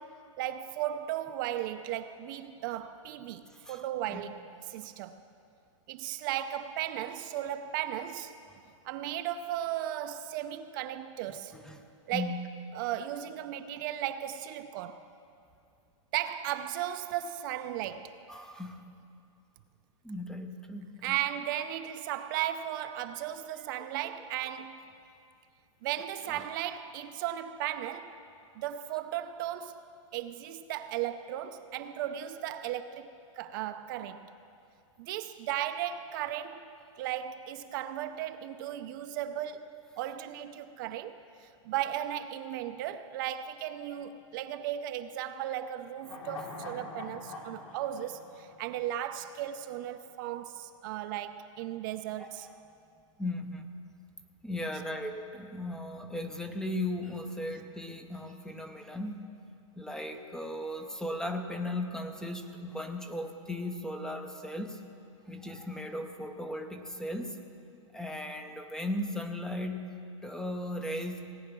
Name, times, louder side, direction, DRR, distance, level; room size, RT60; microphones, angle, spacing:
voice 1, 0.0-5.2 5.9-8.3 8.8-11.6 12.1-12.4 12.7-15.1 16.1-18.2 21.0-24.9 25.8-28.2 28.6-29.8 30.1-34.3 35.0-52.5, right 12 dB, 40° right, 0.5 m, -36 dB
voice 2, 11.5-11.8 12.1-12.4 18.3-18.9 20.0-21.2 26.3-26.5 52.2-52.3 53.2-53.7 54.4-59.3 59.7-64.8 65.3-67.4 67.9-71.4, left 1 dB, 5° left, 0.6 m, -37 dB
sound 1, 46.0-49.4 49.7-49.8, left 3 dB, 85° left, 2.6 m, -44 dB
17.5 x 9.4 x 6.0 m
hypercardioid pair, 150°, 17 cm